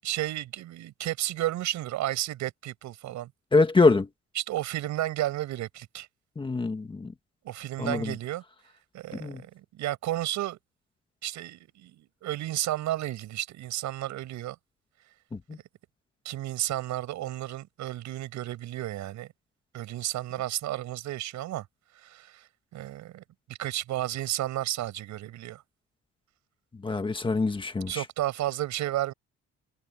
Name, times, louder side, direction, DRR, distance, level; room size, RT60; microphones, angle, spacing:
voice 1, 0.0-3.3 4.3-6.1 7.4-8.4 8.9-10.6 11.2-14.6 16.2-19.3 19.7-21.6 22.0-22.5 22.7-23.2 23.6-25.6 27.9-29.1, right 14 dB, 75° right, 6.6 m, -32 dB
voice 2, 3.5-4.1 6.4-7.1 7.8-8.1 9.2-9.4 15.5-15.6 26.8-28.0, left 3 dB, 15° left, 1.7 m, -24 dB
cardioid pair, 155°, 29 cm